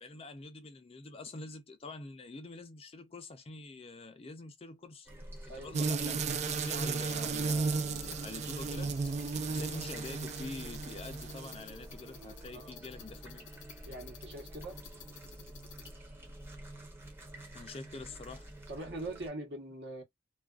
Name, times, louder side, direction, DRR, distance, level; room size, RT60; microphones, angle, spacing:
voice 1, 0.0-5.1 5.5-9.0 9.5-13.5 17.5-18.5, left 3 dB, 30° left, 0.5 m, -46 dB
sound 1, 5.1-19.3, right 1 dB, 15° right, 0.7 m, -49 dB
voice 2, 5.5-5.9 12.5-12.7 13.9-14.8 18.7-20.0, right 2 dB, 65° right, 1.0 m, -42 dB
sound 2, 5.7-11.7, right 4 dB, 35° right, 0.3 m, -34 dB
sound 3, 6.5-15.9, left 8 dB, 75° left, 0.6 m, -54 dB
2.4 x 2.3 x 2.3 m
head